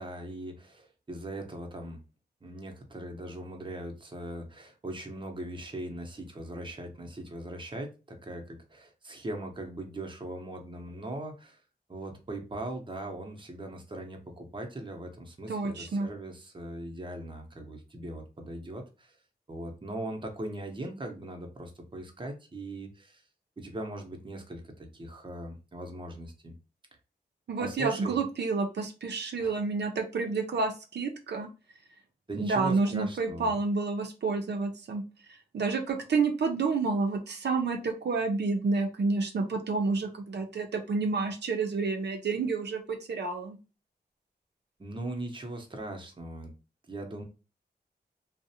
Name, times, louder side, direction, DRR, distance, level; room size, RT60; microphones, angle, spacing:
voice 1, 0.0-2.0 2.4-11.6 11.9-19.2 19.5-23.2 23.6-26.5 27.6-28.2 29.4-29.6 32.3-33.6 44.8-46.5 46.9-47.2, right 1 dB, 30° right, 3 dB, 0.7 m, -40 dB
voice 2, 15.5-16.1 27.5-31.5 32.4-35.0 35.5-43.6, right 4 dB, 75° right, 3 dB, 0.5 m, -29 dB
2.5 x 2.0 x 2.6 m, 0.31 s
wide cardioid pair, 70°, 18 cm